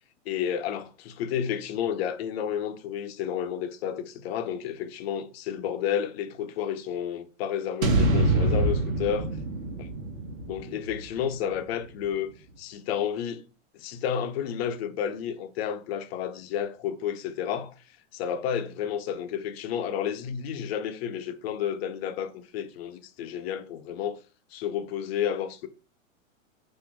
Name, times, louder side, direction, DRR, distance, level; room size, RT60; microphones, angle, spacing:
voice 1, 0.3-9.3 9.8-9.9 10.4-12.3 12.6-13.5 13.7-17.7 18.1-24.2 24.5-25.7, left 9 dB, 50° left, 0.8 m, -31 dB
sound 1, 7.8-12.0, right 2 dB, 80° right, 1.3 m, -26 dB
4.3 x 2.7 x 4.5 m
hypercardioid pair, 130°, 39 cm